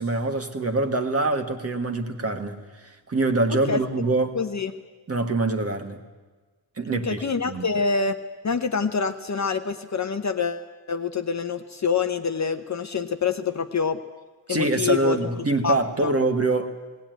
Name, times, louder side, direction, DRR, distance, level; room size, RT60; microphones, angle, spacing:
voice 1, 0.0-4.3 5.1-6.0 6.8-7.7 14.5-16.7, right 2 dB, 30° right, 6 dB, 1.7 m, -25 dB
voice 2, 4.3-4.7 6.9-8.2 8.4-14.0 14.5-15.2 15.6-15.8 16.0-16.1, left 5 dB, 35° left, 7 dB, 0.8 m, -26 dB
18.5 x 18.5 x 9.2 m, 1.3 s
wide cardioid pair, 175°, 47 cm